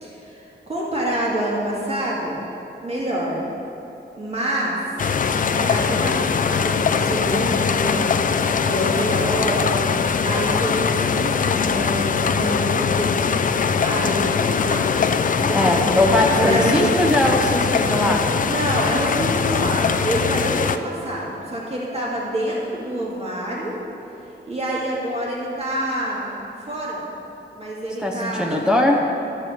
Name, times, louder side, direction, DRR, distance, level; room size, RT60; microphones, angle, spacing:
voice 1, 0.0-2.4 2.8-3.4 4.2-4.8 5.3-16.0 16.3-16.9 18.4-23.8 24.5-26.3 26.7-27.0 27.6-28.5, right 1 dB, 35° right, -5 dB, 2.1 m, -27 dB
sound 1, 5.0-20.8, left 6 dB, 45° left, 0.4 m, -21 dB
voice 2, 15.5-18.4 28.0-29.1, left 1 dB, 5° right, 0 dB, 0.7 m, -20 dB
12.0 x 4.8 x 7.5 m, 2.9 s
wide cardioid pair, 150°, 19 cm